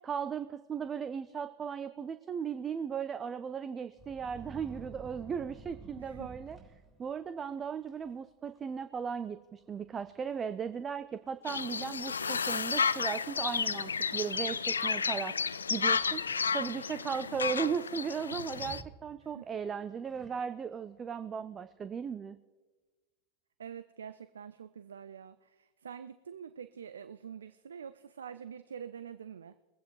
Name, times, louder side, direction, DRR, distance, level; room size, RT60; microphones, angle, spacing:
voice 1, 0.0-6.6 7.0-22.4, right 7 dB, 25° right, 12 dB, 0.5 m, -37 dB
sound 1, 4.0-7.3 7.9-8.1 8.5-8.9 9.1-9.2 10.0-10.1 10.6-10.7 11.3-11.7 12.5-12.6 15.5-16.5 18.5-19.5 20.0-20.8, right 4 dB, ahead, 3.7 m, -51 dB
voice 2, 6.0-6.3 19.2-19.5 23.6-29.6, right 7 dB, 80° right, 12 dB, 0.4 m, -46 dB
sound 2, 11.4-18.8, left 5 dB, 85° left, 0.3 m, -32 dB
22.0 x 8.2 x 4.6 m, 1.3 s
figure-of-eight pair, 90°, 0 cm